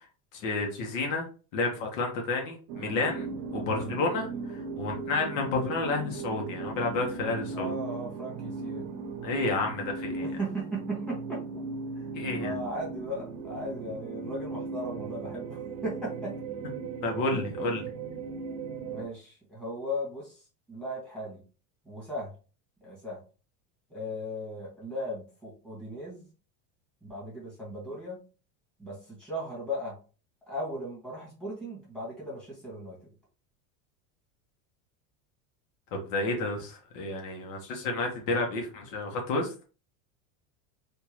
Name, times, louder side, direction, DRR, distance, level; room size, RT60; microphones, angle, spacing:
voice 1, 0.3-1.3 1.5-3.3 3.5-7.7 9.2-10.3 12.1-12.5 17.0-17.9 35.9-39.5, left 3 dB, 75° left, 2 dB, 1.4 m, -30 dB
sound 1, 2.7-19.0, right 4 dB, 60° right, 0.7 m, -37 dB
voice 2, 7.5-8.9 10.2-11.4 12.0-12.1 12.3-16.3 17.3-17.5 18.9-21.4 21.9-22.3 22.8-23.2 23.9-26.3 27.0-28.2 28.8-30.0 30.5-33.0, equal, ahead, -6 dB, 1.7 m, -37 dB
3.5 x 2.8 x 3.1 m, 0.35 s
supercardioid pair, 160°, 40 cm